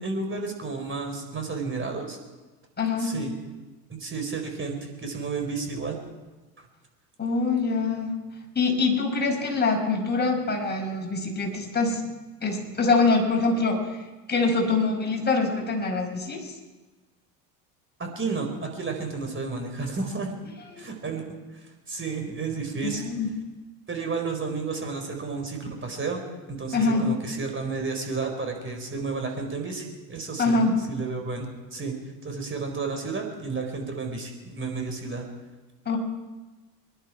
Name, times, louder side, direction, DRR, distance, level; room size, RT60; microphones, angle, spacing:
voice 1, 0.0-2.2 3.0-3.3 3.9-6.0 18.0-20.3 20.8-21.2 21.5-23.0 23.9-26.2 26.5-31.9 32.2-35.3, right 4 dB, 25° right, 3 dB, 4.5 m, -32 dB
voice 2, 2.8-3.2 7.2-8.2 8.6-12.0 12.4-14.0 14.3-16.5 20.8-20.9 22.8-23.3 26.7-27.1 30.4-30.8 35.9-36.0, left 3 dB, 20° left, -1 dB, 5.3 m, -24 dB
26.0 x 11.5 x 4.8 m, 1.2 s
hypercardioid pair, 70°, 50 cm